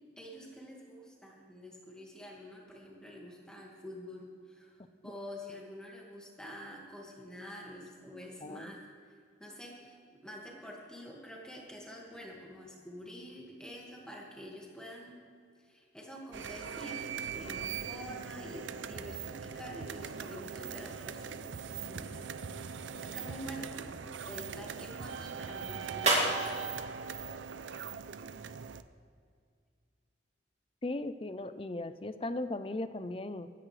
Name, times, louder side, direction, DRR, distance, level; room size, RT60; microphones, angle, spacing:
voice 1, 0.2-4.8 5.0-8.8 9.4-10.0 10.2-15.2 15.6-21.5 21.9-24.0 24.3-26.5, equal, 5° left, -2 dB, 1.9 m, -47 dB
voice 2, 8.4-8.7 30.8-33.5, left 2 dB, 30° left, 12 dB, 0.5 m, -37 dB
sound 1, 16.3-28.8, right 6 dB, 90° right, 0.5 m, -41 dB
sound 2, 25.9-28.4, right 2 dB, 35° right, 2.6 m, -37 dB
24.0 x 9.9 x 3.3 m, 2.3 s
head